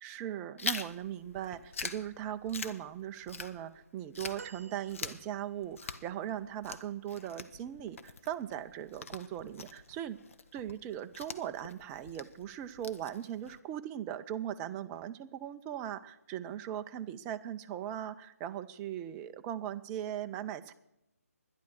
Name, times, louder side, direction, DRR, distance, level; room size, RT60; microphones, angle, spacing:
voice 1, 0.0-10.2 10.5-20.7, right 11 dB, 15° right, 10 dB, 0.4 m, -39 dB
Chewing mastication, 0.6-3.8 4.1-13.6, left 4 dB, 55° left, 0.9 m, -44 dB
sound 1, 4.4-5.8 6.5-6.6, right 5 dB, 60° right, 0.6 m, -52 dB
11.5 x 11.0 x 6.1 m, 0.89 s
figure-of-eight pair, 145°, 9 cm